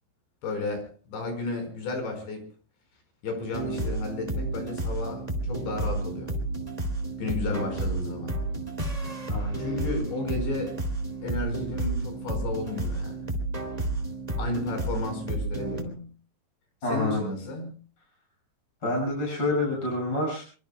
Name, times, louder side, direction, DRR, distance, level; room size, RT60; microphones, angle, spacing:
voice 1, 0.4-2.5 3.2-6.3 7.2-8.4 9.6-10.8 11.2-13.3 14.4-16.1 16.9-17.7, left 2 dB, 75° left, 6 dB, 7.3 m, -33 dB
sound 1, 3.5-15.8, right 2 dB, 10° right, 2.0 m, -31 dB
voice 2, 16.8-17.2 18.8-20.4, left 2 dB, 25° left, -2 dB, 7.2 m, -27 dB
26.0 x 24.0 x 2.3 m, 0.38 s
omnidirectional pair, 5.2 m